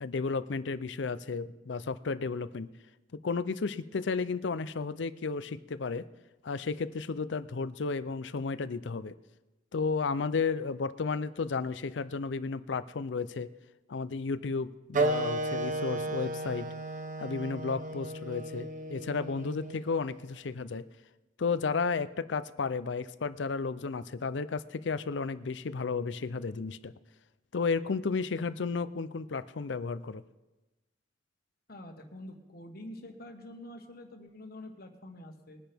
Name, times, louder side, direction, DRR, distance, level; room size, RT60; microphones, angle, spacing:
voice 1, 0.0-2.7 3.2-6.1 6.4-9.1 9.7-13.5 13.9-16.7 17.2-20.8 21.4-26.9 27.5-30.2, left 4 dB, 70° left, 14 dB, 0.5 m, -33 dB
Wind instrument woodwind instrument, 14.9-20.1, right 2 dB, 45° right, 0.8 m, -34 dB
voice 2, 31.7-35.6, left 1 dB, 55° left, 4 dB, 1.4 m, -46 dB
21.0 x 10.0 x 3.5 m, 1.1 s
head